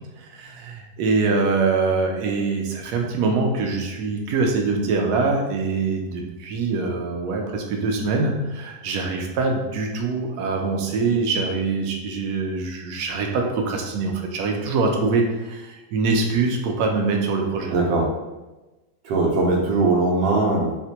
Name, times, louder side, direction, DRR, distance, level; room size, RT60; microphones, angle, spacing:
voice 1, 0.2-17.7, right 3 dB, 70° right, 1 dB, 1.0 m, -24 dB
voice 2, 17.7-18.1 19.0-20.8, right 3 dB, 90° right, -1 dB, 1.3 m, -20 dB
4.1 x 2.2 x 2.8 m, 1.1 s
omnidirectional pair, 1.9 m